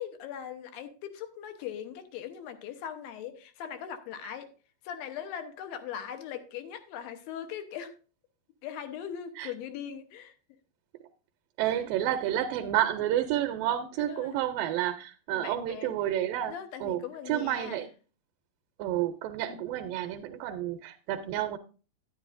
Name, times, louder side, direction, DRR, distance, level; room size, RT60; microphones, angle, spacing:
voice 1, 0.0-4.5 4.8-7.9 8.6-10.3 14.0-14.4 15.3-15.9 16.4-17.8 19.5-19.6, left 9 dB, 85° left, 8 dB, 2.7 m, -40 dB
voice 2, 11.6-16.6 16.8-17.9 18.8-21.6, right 12 dB, 80° right, 7 dB, 2.2 m, -30 dB
10.5 x 9.9 x 2.5 m, 0.36 s
omnidirectional pair, 4.1 m